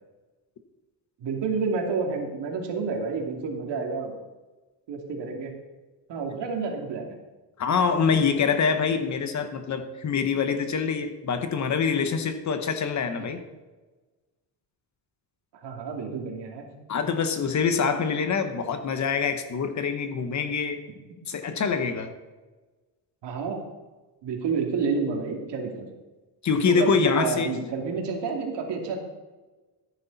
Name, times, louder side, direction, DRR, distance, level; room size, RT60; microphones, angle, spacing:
voice 1, 1.2-4.1 4.9-5.5 6.1-7.1 13.2-13.3 15.6-16.7 23.2-23.6 24.2-25.9 26.7-29.0, right 5 dB, 65° right, 2 dB, 2.6 m, -29 dB
voice 2, 7.6-13.4 16.9-20.8 21.3-22.1 26.4-27.5, left 5 dB, 40° left, 8 dB, 1.1 m, -25 dB
14.0 x 10.0 x 4.1 m, 1.2 s
cardioid pair, 145°, 45 cm